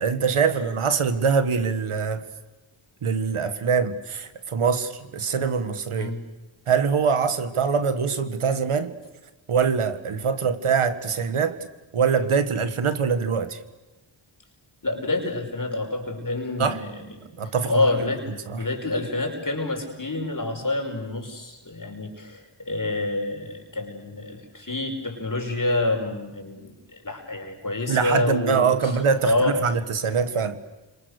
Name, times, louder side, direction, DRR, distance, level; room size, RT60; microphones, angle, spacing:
voice 1, 0.0-2.2 3.0-6.1 6.7-8.9 9.5-11.6 11.9-13.6 16.6-16.8 17.4-17.9 18.5-18.6 27.9-30.6, right 6 dB, 90° right, 1.8 m, -23 dB
voice 2, 6.0-6.3 14.8-17.2 17.7-29.6, left 2 dB, 40° left, 5.6 m, -27 dB
30.0 x 26.5 x 6.7 m
cardioid pair, 55°, 49 cm